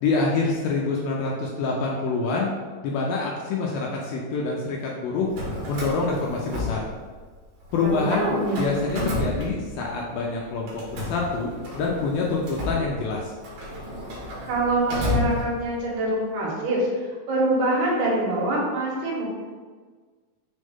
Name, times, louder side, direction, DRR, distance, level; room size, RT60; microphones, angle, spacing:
voice 1, 0.0-2.5 2.8-5.3 5.7-6.8 7.7-13.3, left 3 dB, 75° left, -2 dB, 2.3 m, -26 dB
Drawer open or close, 5.2-7.4 7.7-10.1 10.7-15.9, left 1 dB, 65° right, 3.0 m, -32 dB
voice 2, 7.8-8.6 14.5-19.3, right 1 dB, 85° right, -3 dB, 3.4 m, -25 dB
6.5 x 4.2 x 3.6 m, 1.5 s
omnidirectional pair, 4.5 m